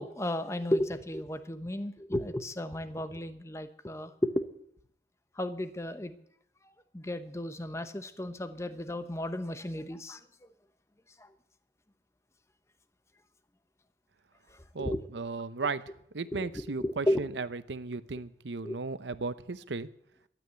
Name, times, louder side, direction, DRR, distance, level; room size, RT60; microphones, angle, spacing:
voice 1, 0.0-4.5 5.4-6.1 6.9-10.2 14.8-15.0 16.3-16.5 16.8-17.2 18.6-18.8, left 1 dB, 15° left, 10 dB, 0.8 m, -33 dB
voice 2, 14.7-15.8 16.1-19.9, right 4 dB, 85° right, 14 dB, 0.8 m, -35 dB
12.5 x 8.9 x 9.3 m, 0.68 s
head